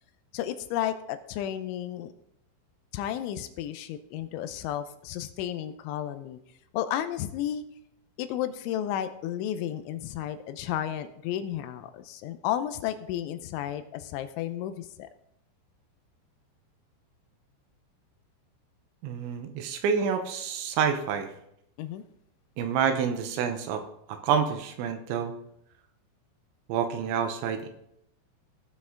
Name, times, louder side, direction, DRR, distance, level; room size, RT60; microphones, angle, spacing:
voice 1, 0.3-2.1 2.9-6.4 6.7-7.6 8.2-15.1 21.8-22.0, left 11 dB, 80° left, 10 dB, 3.0 m, -32 dB
voice 2, 19.0-21.3 22.6-23.8 24.1-25.3 26.7-27.7, right 7 dB, 80° right, 7 dB, 3.1 m, -28 dB
17.5 x 6.0 x 3.7 m, 0.75 s
omnidirectional pair, 5.5 m